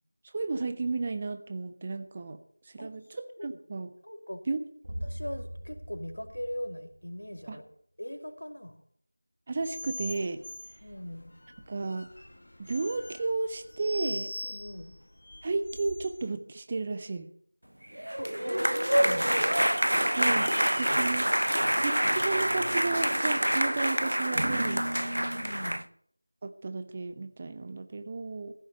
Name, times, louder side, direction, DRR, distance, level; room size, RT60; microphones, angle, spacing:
voice 1, 0.3-2.4 2.6-3.9 4.5-4.6 7.5-7.6 9.5-10.4 11.7-12.1 12.6-14.3 15.4-17.3 20.1-21.3 21.8-24.8 26.4-28.5, right 3 dB, 20° right, 10 dB, 0.6 m, -33 dB
voice 2, 4.0-4.4 5.0-7.6 8.0-8.7 10.8-11.3 14.4-14.9 18.2-18.3 18.6-19.7 20.7-20.9 25.3-25.8, equal, 75° left, 6 dB, 2.5 m, -40 dB
sound 1, 4.8-7.5, equal, 65° right, 4.4 m, -41 dB
sound 2, 9.6-16.3, left 1 dB, 55° left, 1.7 m, -43 dB
sound 3, 18.0-25.8, right 1 dB, 85° right, 0.8 m, -26 dB
15.5 x 6.8 x 8.7 m, 0.63 s
figure-of-eight pair, 175°, 0 cm